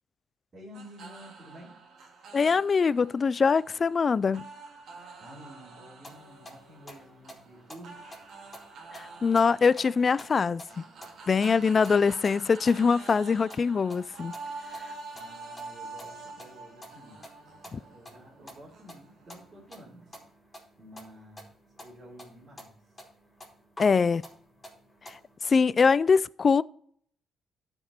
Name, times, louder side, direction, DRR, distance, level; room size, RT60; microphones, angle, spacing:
voice 1, 0.5-1.8 5.2-8.3 15.1-17.3 17.6-20.2 20.8-23.1, equal, 35° right, 3.7 m, -51 dB
sound 1, 0.7-20.3, right 4 dB, 65° right, 2.2 m, -47 dB
voice 2, 2.3-4.4 8.9-10.8 11.3-14.3 17.7-17.8 23.8-24.2 25.1-26.6, left 5 dB, 40° left, 0.3 m, -23 dB
sound 2, 6.0-25.4, equal, 15° left, 4.1 m, -51 dB
12.0 x 5.3 x 4.2 m
cardioid pair, 90°, 0 cm